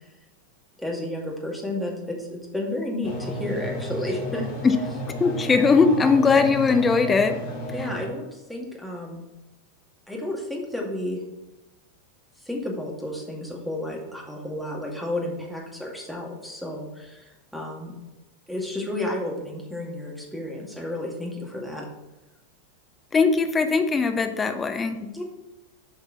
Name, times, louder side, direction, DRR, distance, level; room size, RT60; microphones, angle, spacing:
voice 1, 0.8-4.5 7.7-9.2 10.1-11.2 12.4-17.9 18.5-21.9 25.0-25.2, left 1 dB, ahead, -2 dB, 2.2 m, -32 dB
sound 1, 3.0-8.1, right 1 dB, 45° left, 2.1 m, -32 dB
voice 2, 5.1-7.4 23.1-25.0, left 4 dB, 15° left, 7 dB, 0.6 m, -20 dB
8.1 x 5.3 x 5.9 m, 0.99 s
figure-of-eight pair, 90°, 0 cm